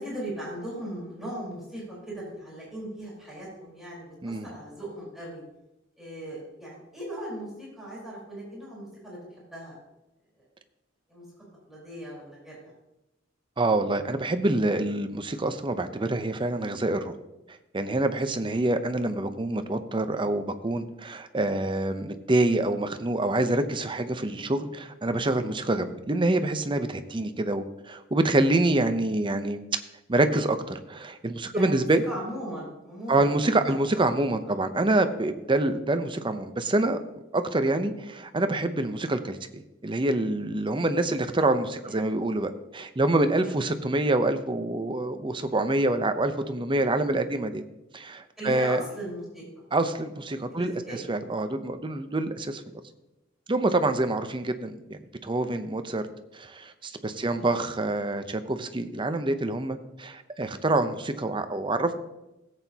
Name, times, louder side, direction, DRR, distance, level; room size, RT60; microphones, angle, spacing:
voice 1, 0.0-5.4 6.0-9.8 11.1-11.2 11.7-12.7 31.5-33.3 33.7-33.8 34.4-34.6 41.8-42.0 43.4-43.6 48.4-49.4 50.5-51.1 51.4-51.5 57.2-57.5, right 1 dB, ahead, -7 dB, 4.3 m, -38 dB
voice 2, 13.6-17.2 17.7-29.8 30.1-32.0 33.1-37.0 37.3-47.6 47.9-48.8 49.7-52.8 53.5-56.0 56.3-61.9, right 2 dB, 25° right, 9 dB, 0.7 m, -26 dB
16.5 x 8.1 x 2.9 m, 0.94 s
head